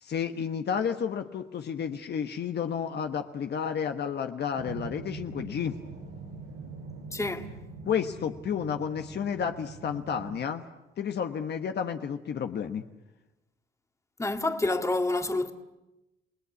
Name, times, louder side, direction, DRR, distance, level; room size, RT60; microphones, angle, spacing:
voice 1, 0.0-5.7 7.9-10.6 11.0-12.8, left 7 dB, 55° left, 1.3 m, -31 dB
sound 1, 4.5-10.4, right 4 dB, 80° right, 7.5 m, -43 dB
voice 2, 7.1-7.5 14.2-15.5, left 2 dB, 15° left, 1.9 m, -28 dB
29.5 x 19.0 x 8.3 m
cardioid pair, 90°, 20 cm